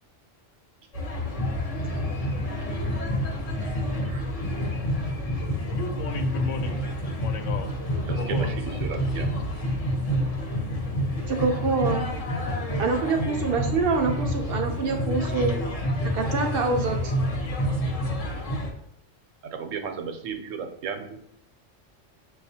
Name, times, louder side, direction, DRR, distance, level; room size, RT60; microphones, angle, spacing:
sound 1, 0.9-18.7, equal, 35° left, 0.7 m, -28 dB
voice 1, 5.7-6.8 7.2-7.7 8.2-8.5, left 4 dB, 75° left, 6 dB, 0.9 m, -34 dB
voice 2, 7.8-9.4 12.4-12.6 19.4-21.2, right 6 dB, 85° right, 6 dB, 1.0 m, -35 dB
voice 3, 11.3-12.1 12.8-15.6 16.1-17.1, right 4 dB, 60° right, 3 dB, 0.6 m, -26 dB
6.6 x 2.3 x 2.7 m, 0.78 s
omnidirectional pair, 1.3 m